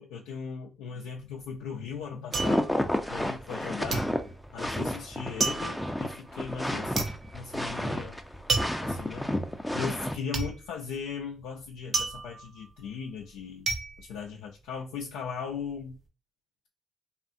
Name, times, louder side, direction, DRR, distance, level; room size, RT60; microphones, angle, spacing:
voice 1, 0.0-2.7 3.1-4.0 4.5-8.2 8.8-9.3 9.7-13.7 14.0-16.0, left 6 dB, 85° left, 0.3 m, -38 dB
sound 1, 1.2-3.6 3.9-15.0 15.4-15.9, right 4 dB, 55° right, 0.6 m, -33 dB
sound 2, 2.3-10.1, left 1 dB, 5° left, 0.4 m, -31 dB
2.6 x 2.4 x 2.5 m
supercardioid pair, 55°, 0 cm